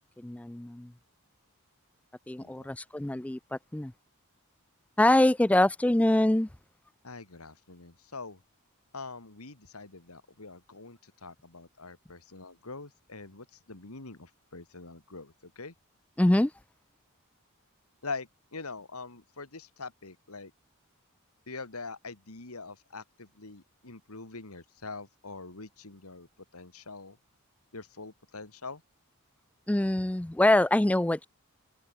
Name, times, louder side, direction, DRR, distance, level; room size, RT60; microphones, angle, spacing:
voice 1, 0.2-0.9 2.3-3.9 5.0-6.5 16.2-16.5 29.7-31.2, left 1 dB, 5° left, 0.4 m, -24 dB
voice 2, 2.4-2.7 7.0-8.4 8.9-15.7 18.0-20.5 21.5-26.3 26.5-27.2 27.7-28.8, left 3 dB, 80° left, 2.5 m, -44 dB
open air
head